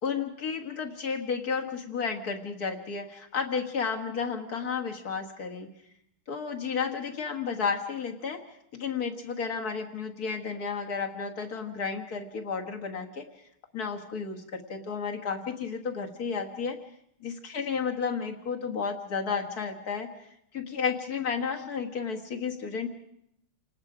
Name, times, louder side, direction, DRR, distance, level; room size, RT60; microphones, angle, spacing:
voice 1, 0.0-5.7 6.3-8.4 8.7-13.3 13.7-16.8 17.2-20.1 20.5-22.9, left 5 dB, 45° left, 3 dB, 2.1 m, -32 dB
28.5 x 19.0 x 5.0 m, 0.74 s
omnidirectional pair, 2.3 m